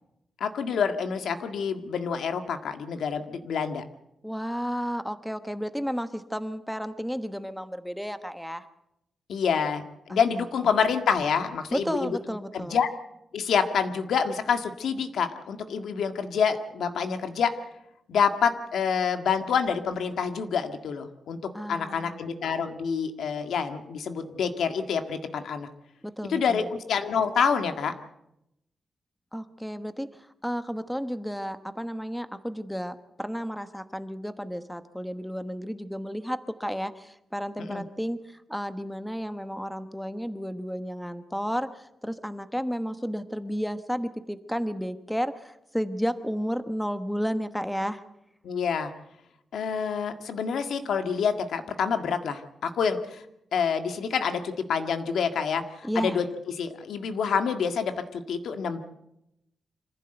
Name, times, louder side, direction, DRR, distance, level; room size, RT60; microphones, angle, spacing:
voice 1, 0.4-3.8 9.3-12.2 12.5-12.9 13.3-17.5 18.1-21.4 21.7-25.7 26.3-27.9 37.6-37.8 48.4-48.9 49.5-53.2 53.5-54.4 54.7-56.2 56.6-58.8, left 6 dB, 90° left, 7 dB, 1.9 m, -27 dB
voice 2, 4.2-8.6 10.1-10.2 11.7-12.8 21.5-22.2 26.0-26.7 29.3-30.1 30.4-48.0 55.8-56.2, equal, ahead, 10 dB, 1.1 m, -32 dB
25.5 x 15.5 x 8.0 m, 0.84 s
wide cardioid pair, 140°, 0 cm